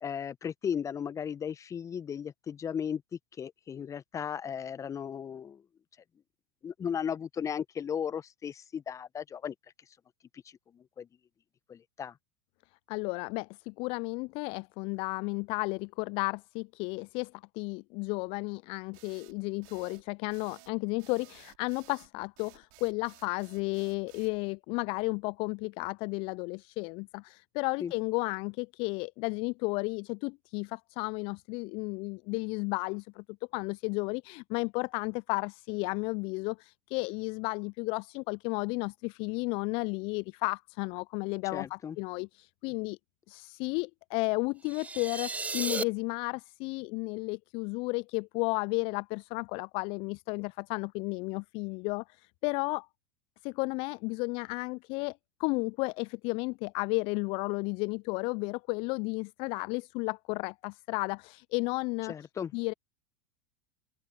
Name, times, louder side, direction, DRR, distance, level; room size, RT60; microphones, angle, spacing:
voice 1, 0.0-3.0 3.4-5.6 6.6-9.5 10.3-10.4 10.7-11.1 11.7-12.1 27.8-27.9 41.5-42.0 62.1-62.5, left 8 dB, 25° left, 1.1 m, -36 dB
voice 2, 12.9-33.2 33.5-43.0 43.3-52.9 53.4-62.1 62.5-62.7, left 29 dB, 50° left, 0.4 m, -33 dB
sound 1, 18.9-24.4, right 31 dB, 60° right, 3.8 m, -57 dB
sound 2, 44.6-45.8, right 3 dB, 10° right, 0.9 m, -34 dB
open air
hypercardioid pair, 85°, 12 cm